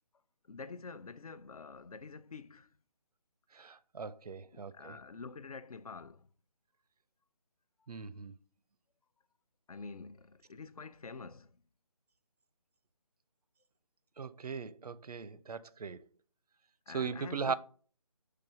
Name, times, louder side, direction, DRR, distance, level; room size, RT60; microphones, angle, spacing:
voice 1, 0.4-2.7 4.5-6.3 9.7-11.6 16.9-17.5, left 4 dB, 70° left, 0.5 m, -47 dB
voice 2, 3.5-5.0 7.9-8.3 14.2-16.0 16.9-17.5, right 5 dB, 85° right, 0.5 m, -39 dB
5.9 x 3.2 x 4.9 m
figure-of-eight pair, 175°, 19 cm